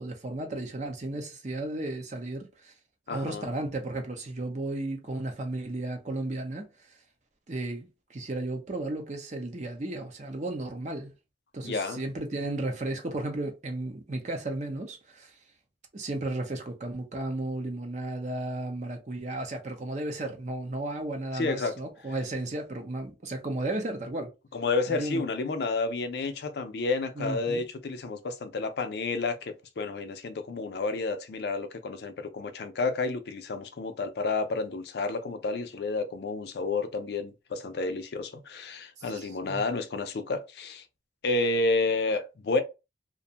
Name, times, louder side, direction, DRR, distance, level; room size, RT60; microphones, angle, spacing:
voice 1, 0.0-2.7 3.1-6.7 7.5-11.1 11.5-15.3 15.9-24.3 24.9-25.2 27.2-27.6 39.0-39.6, right 2 dB, 40° right, 0.6 m, -34 dB
voice 2, 3.1-3.5 11.6-12.0 21.3-21.7 24.5-40.8 41.2-42.6, left 3 dB, 60° left, 0.4 m, -30 dB
2.5 x 2.1 x 2.7 m
head